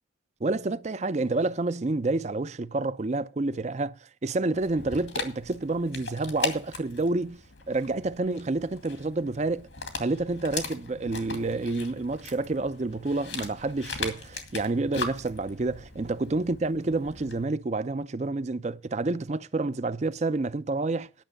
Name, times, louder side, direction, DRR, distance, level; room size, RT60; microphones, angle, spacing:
voice 1, 0.4-7.4 7.7-9.7 10.0-21.1, right 2 dB, 40° right, 0.5 m, -29 dB
Dog, 4.6-17.5, left 4 dB, 90° left, 2.3 m, -39 dB
10.5 x 6.2 x 8.7 m
head